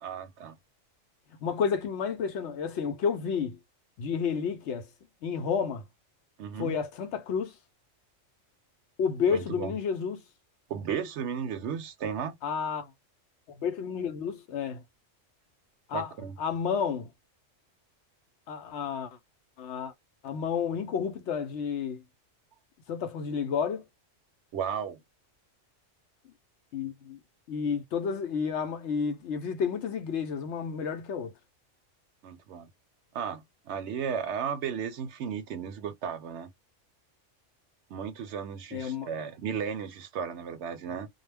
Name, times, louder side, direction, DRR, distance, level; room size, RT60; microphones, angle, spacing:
voice 1, 0.0-0.6 6.4-6.8 9.3-9.7 10.7-12.4 15.9-16.4 24.5-25.0 32.2-32.7 33.1-36.5 37.9-41.1, right 7 dB, 70° right, 0.8 m, -34 dB
voice 2, 1.4-3.6 4.0-4.9 5.2-5.8 6.6-7.6 9.0-10.2 12.4-12.9 13.5-14.8 15.9-16.1 16.4-17.1 18.5-19.2 19.6-19.9 20.2-22.0 22.9-23.8 26.7-27.2 27.5-31.3 38.7-39.1, left 6 dB, 70° left, 0.8 m, -31 dB
2.3 x 2.1 x 3.2 m
omnidirectional pair, 1.3 m